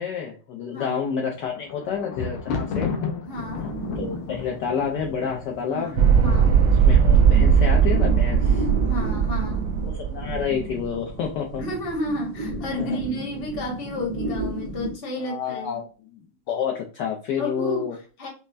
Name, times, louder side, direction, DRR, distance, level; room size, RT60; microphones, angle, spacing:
voice 1, 0.0-2.9 4.0-6.0 6.8-8.7 9.8-11.6 12.8-13.0 15.2-15.9 16.1-16.2 16.5-17.9, left 7 dB, 70° left, 1.1 m, -29 dB
Thunder, 1.1-6.3 7.0-7.5 7.8-7.9, left 5 dB, 85° left, 1.5 m, -32 dB
voice 2, 3.3-3.6 5.7-6.5 8.8-9.7 11.6-15.8 17.4-18.3, left 1 dB, 35° left, 1.0 m, -31 dB
sound 1, 3.3-14.9, right 2 dB, 55° right, 0.5 m, -34 dB
sound 2, 6.0-11.2, right 7 dB, 75° right, 1.5 m, -19 dB
5.4 x 2.1 x 2.5 m
omnidirectional pair, 2.3 m